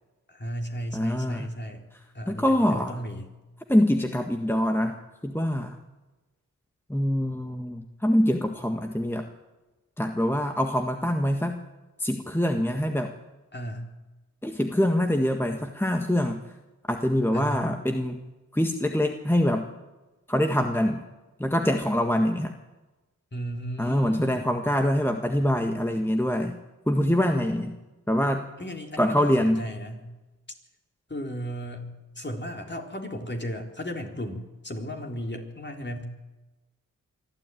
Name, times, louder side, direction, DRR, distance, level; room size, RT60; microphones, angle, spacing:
voice 1, 0.3-1.8 2.1-3.3 13.5-13.9 17.3-17.7 23.3-24.5 28.6-30.1 31.1-36.0, equal, 30° left, 2 dB, 3.8 m, -35 dB
voice 2, 0.9-1.5 2.3-3.0 3.7-5.8 6.9-9.3 10.0-11.6 12.0-13.1 14.4-16.4 16.9-18.2 18.5-19.7 20.3-21.0 21.4-22.5 23.8-26.6 26.9-27.7 28.1-28.4 29.0-29.6, equal, 5° left, 4 dB, 1.6 m, -24 dB
23.5 x 13.0 x 9.2 m, 1.1 s
cardioid pair, 45°, 34 cm